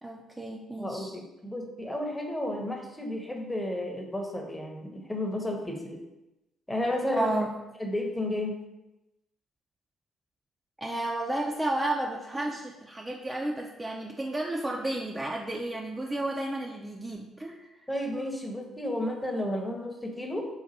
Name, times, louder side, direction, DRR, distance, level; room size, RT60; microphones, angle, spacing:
voice 1, 0.0-1.1 7.1-7.5 10.8-17.7, right 1 dB, 15° right, -1 dB, 0.4 m, -32 dB
voice 2, 0.8-6.0 6.7-7.3 7.8-8.6 17.9-20.5, left 1 dB, 10° left, 2 dB, 0.8 m, -32 dB
4.0 x 2.5 x 4.0 m, 0.97 s
figure-of-eight pair, 45°, 0 cm